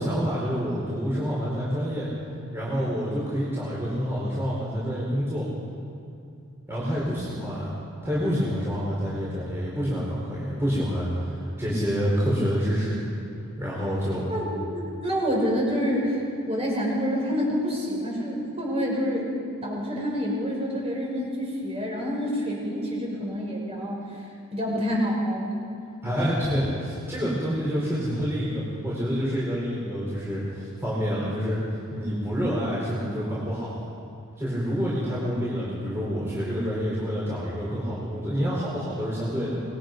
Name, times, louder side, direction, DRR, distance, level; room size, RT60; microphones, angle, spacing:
voice 1, 0.0-2.1 2.5-5.5 6.7-7.7 8.0-13.0 13.6-14.3 26.0-31.6 31.9-33.8 34.4-39.6, equal, 10° right, -7 dB, 4.2 m, -27 dB
voice 2, 14.3-16.2 16.5-19.3 19.6-24.0 24.5-25.6, equal, 30° right, -2 dB, 5.9 m, -27 dB
25.5 x 20.5 x 5.2 m, 2.7 s
head